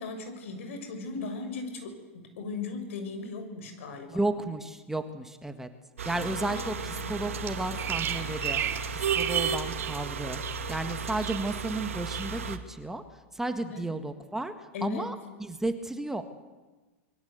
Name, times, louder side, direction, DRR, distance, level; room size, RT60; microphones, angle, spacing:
voice 1, 0.0-4.2 6.0-7.2 13.6-13.9 14.7-15.1, left 4 dB, 70° left, 7 dB, 6.6 m, -38 dB
voice 2, 4.1-5.7 6.1-8.6 8.9-10.4 10.7-16.2, right 2 dB, 5° right, 7 dB, 1.8 m, -33 dB
sound 1, 6.0-12.6, right 5 dB, 90° right, 2.2 m, -34 dB
Bird vocalization bird call bird song, 7.5-10.0 10.3-10.9 11.2-11.7 12.1-12.3, right 10 dB, 30° right, 3.0 m, -33 dB
27.0 x 22.0 x 8.2 m, 1.2 s
hypercardioid pair, 110°, 7 cm